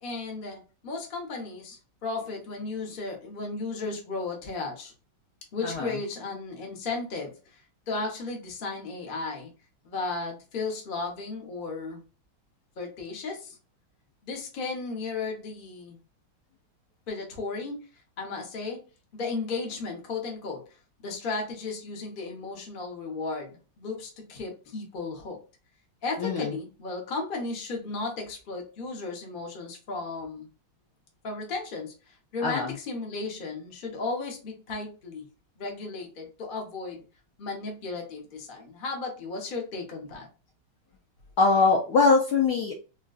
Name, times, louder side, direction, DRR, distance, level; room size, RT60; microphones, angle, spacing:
voice 1, 0.0-4.9 5.5-9.5 9.8-12.0 12.8-13.6 14.2-16.0 17.1-18.8 19.1-20.6 21.0-25.4 26.0-30.5 31.2-35.3 35.6-37.0 37.4-40.3, left 3 dB, 55° left, 1 dB, 0.5 m, -35 dB
voice 2, 5.6-5.9 26.2-26.5 32.4-32.7 41.4-42.7, left 4 dB, 75° left, 1 dB, 1.0 m, -22 dB
3.8 x 2.3 x 2.3 m, 0.33 s
omnidirectional pair, 2.2 m